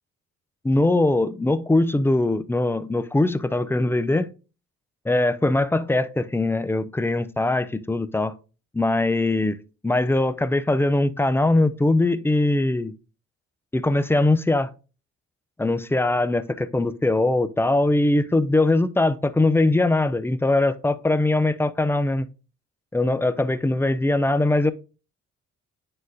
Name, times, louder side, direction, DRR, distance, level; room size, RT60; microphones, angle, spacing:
voice 1, 0.6-4.3 5.1-8.3 8.7-9.6 9.8-12.9 13.7-14.7 15.6-22.3 22.9-24.7, left 2 dB, 10° left, 0.4 m, -21 dB
9.4 x 3.9 x 2.6 m
cardioid pair, 90°, 30 cm